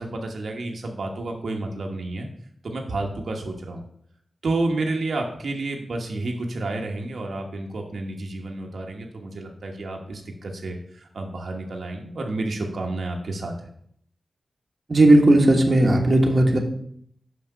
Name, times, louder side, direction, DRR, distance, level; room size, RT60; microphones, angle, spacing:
voice 1, 0.0-2.3 2.6-3.8 4.4-13.7, right 2 dB, 75° right, 2 dB, 1.2 m, -30 dB
voice 2, 14.9-16.6, right 1 dB, 40° right, 2 dB, 1.4 m, -16 dB
6.0 x 5.9 x 6.7 m, 0.66 s
wide cardioid pair, 90°, 0 cm